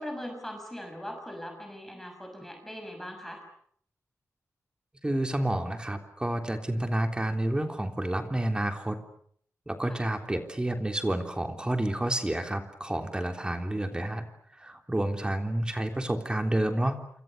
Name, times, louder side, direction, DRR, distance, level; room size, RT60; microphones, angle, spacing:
voice 1, 0.0-3.4 9.9-10.0, equal, 5° left, 4 dB, 6.3 m, -40 dB
voice 2, 5.0-9.0 9.7-14.2 14.5-17.0, right 1 dB, 15° right, 5 dB, 3.5 m, -29 dB
27.5 x 27.5 x 6.9 m, 0.63 s
wide cardioid pair, 105°, 6 cm